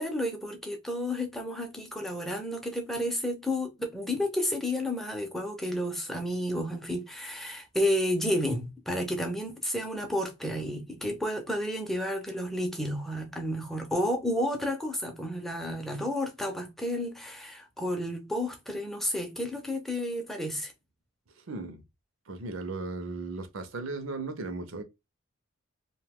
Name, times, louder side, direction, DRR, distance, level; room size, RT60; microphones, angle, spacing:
voice 1, 0.0-20.7, left 1 dB, ahead, 0.5 m, -31 dB
voice 2, 21.3-21.8 22.3-24.8, right 3 dB, 75° right, 0.6 m, -36 dB
2.7 x 2.2 x 3.4 m
head